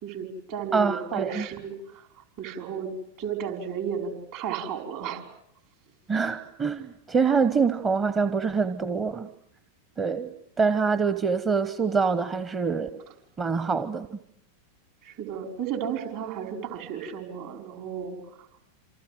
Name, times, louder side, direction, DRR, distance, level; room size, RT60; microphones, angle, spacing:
voice 1, 0.0-2.0 2.4-2.9 3.2-5.2 15.0-18.2, right 7 dB, 50° right, 4 dB, 5.2 m, -33 dB
voice 2, 0.7-1.5 6.1-9.3 10.0-10.3 10.6-12.9 13.4-14.1, right 5 dB, 20° right, 12 dB, 1.1 m, -25 dB
28.0 x 27.0 x 7.8 m, 0.75 s
figure-of-eight pair, 90°, 0 cm